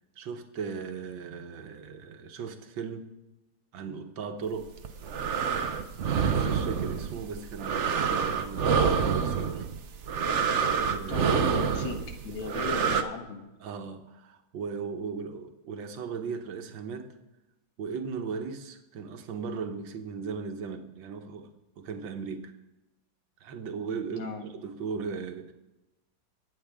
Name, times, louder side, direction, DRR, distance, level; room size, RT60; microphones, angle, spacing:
voice 1, 0.2-3.1 3.7-4.7 6.3-9.6 10.8-11.5 12.3-12.9 13.6-17.2 17.8-22.5 23.4-24.3 24.5-25.5, right 5 dB, 75° right, 6 dB, 1.8 m, -37 dB
sound 1, 4.7-13.0, right 6 dB, 55° right, 0.8 m, -27 dB
voice 2, 10.8-13.5 24.1-24.4, left 5 dB, 85° left, 4 dB, 2.3 m, -38 dB
24.0 x 8.7 x 3.6 m, 1.0 s
omnidirectional pair, 2.1 m